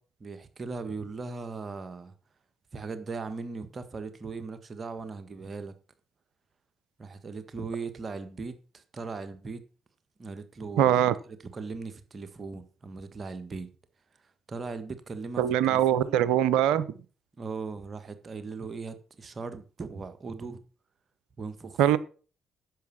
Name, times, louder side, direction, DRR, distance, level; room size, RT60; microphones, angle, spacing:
voice 1, 0.2-2.1 2.7-5.7 7.0-9.6 10.2-13.7 14.5-16.2 17.4-20.6 21.4-22.0, right 4 dB, 40° right, 1.6 m, -38 dB
voice 2, 10.8-11.1 15.4-16.8 21.8-22.0, right 11 dB, 75° right, 0.7 m, -22 dB
10.5 x 7.1 x 6.1 m
hypercardioid pair, 45°, 0 cm